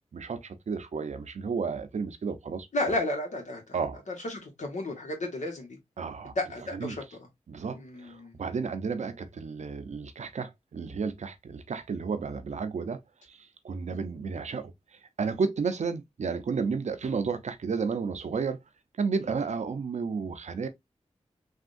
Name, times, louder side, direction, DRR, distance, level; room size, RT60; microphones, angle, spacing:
voice 1, 0.1-3.0 3.7-4.0 6.0-6.3 6.7-7.0 7.5-13.0 13.3-14.7 15.2-18.6 19.0-20.7, right 5 dB, 75° right, 0.6 m, -32 dB
voice 2, 2.7-3.8 4.1-5.8 6.3-7.0 7.7-8.4 13.8-14.0, left 1 dB, 80° left, 1.2 m, -33 dB
3.5 x 2.4 x 2.5 m
cardioid pair, 40°, 12 cm